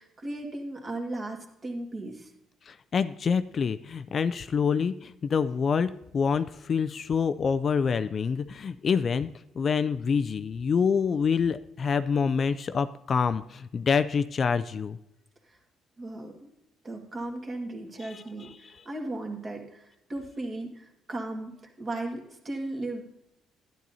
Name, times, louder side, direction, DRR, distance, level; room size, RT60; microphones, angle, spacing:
voice 1, 0.0-2.3 15.5-15.6 16.0-16.6 16.8-23.0, right 2 dB, 30° right, 2 dB, 1.8 m, -36 dB
voice 2, 2.7-9.3 9.6-15.0 18.0-18.7, left 6 dB, 40° left, 13 dB, 0.3 m, -27 dB
12.0 x 10.5 x 2.7 m, 0.82 s
cardioid pair, 125°, 0 cm